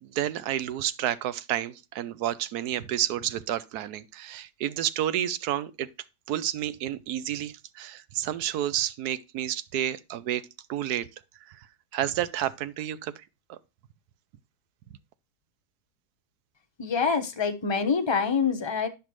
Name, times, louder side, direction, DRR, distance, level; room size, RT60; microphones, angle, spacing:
voice 1, 0.0-5.9 6.3-10.4 10.7-11.1 11.5-11.7 11.9-13.2 13.5-13.6, right 11 dB, 70° right, 1.1 m, -30 dB
voice 2, 16.8-18.9, left 5 dB, 25° left, 0.6 m, -26 dB
10.5 x 5.7 x 3.1 m
omnidirectional pair, 1.8 m